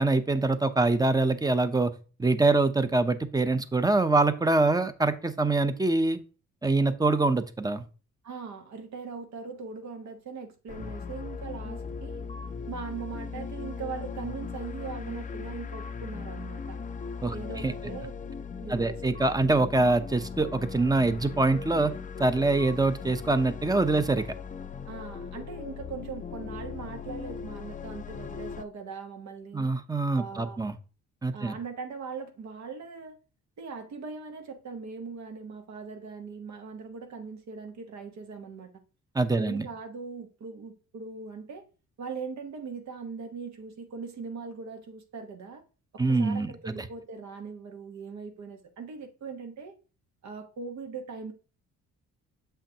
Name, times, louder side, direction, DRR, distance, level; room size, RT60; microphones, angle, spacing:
voice 1, 0.0-1.9 2.2-6.2 6.6-7.8 17.2-17.3 17.6-17.7 18.7-21.9 22.2-24.3 29.5-30.7 31.2-31.6 39.1-39.7 46.0-46.8, right 2 dB, 10° right, 0.7 m, -24 dB
voice 2, 8.2-12.2 12.7-16.8 17.3-18.1 18.6-19.0 19.4-19.5 24.9-29.7 30.1-30.7 31.3-33.2 33.6-38.7 39.3-41.6 42.0-45.6 45.9-49.7 50.2-51.3, right 5 dB, 65° right, 1.2 m, -40 dB
sound 1, 10.7-28.6, left 5 dB, 25° left, 0.6 m, -38 dB
7.5 x 5.7 x 2.9 m
cardioid pair, 90°, 30 cm